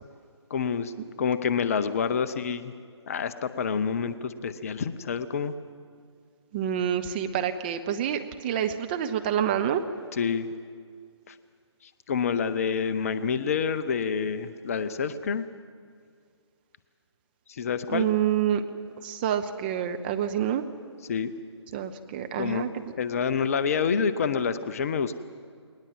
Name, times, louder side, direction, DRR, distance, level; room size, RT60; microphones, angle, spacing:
voice 1, 0.5-0.9 1.2-2.7 3.1-5.5 10.1-10.5 11.3-11.4 11.8-15.5 17.5-18.1 21.1-21.3 22.4-22.6 23.0-25.2, left 6 dB, 30° left, 12 dB, 0.6 m, -28 dB
voice 2, 6.5-9.8 17.9-18.6 19.0-20.6 21.7-22.7, right 9 dB, 20° right, 7 dB, 0.7 m, -27 dB
20.5 x 19.5 x 7.6 m, 2.1 s
figure-of-eight pair, 145°, 15 cm